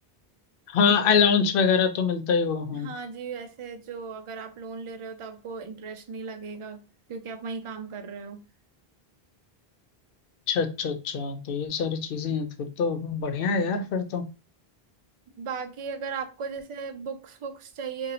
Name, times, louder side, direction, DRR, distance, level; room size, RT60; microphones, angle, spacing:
voice 1, 0.7-2.9 10.5-14.3, left 6 dB, 65° left, 0.8 m, -24 dB
voice 2, 2.7-6.8 7.1-8.4 15.4-18.1, right 5 dB, 45° right, 0.4 m, -36 dB
2.7 x 2.7 x 4.0 m
omnidirectional pair, 1.0 m